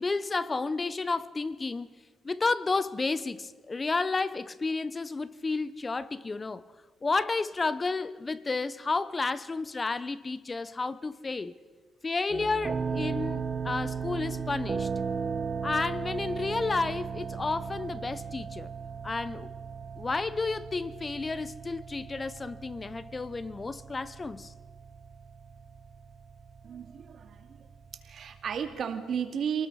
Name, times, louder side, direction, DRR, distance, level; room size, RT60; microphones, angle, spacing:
voice 1, 0.0-1.9 2.2-6.6 7.0-11.6 12.0-14.9 15.6-18.7 19.0-19.5 20.0-24.5, left 3 dB, 25° left, 0.7 m, -31 dB
sound 1, 12.3-28.8, right 6 dB, 40° right, 1.0 m, -37 dB
voice 2, 26.6-27.7 28.0-29.7, right 7 dB, 60° right, 2.3 m, -34 dB
27.0 x 19.0 x 5.6 m
cardioid pair, 90°, 0 cm